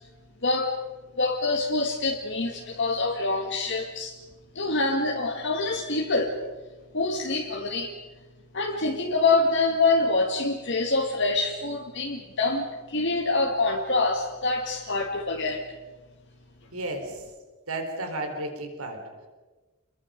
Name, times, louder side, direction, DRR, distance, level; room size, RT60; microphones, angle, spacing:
voice 1, 0.4-0.8 1.2-4.1 4.5-6.3 6.9-7.9 8.5-15.6, left 3 dB, 55° left, 0 dB, 2.0 m, -25 dB
voice 2, 16.7-17.3 17.7-19.3, right 2 dB, 85° right, 4 dB, 4.3 m, -33 dB
29.0 x 23.0 x 5.3 m, 1.2 s
head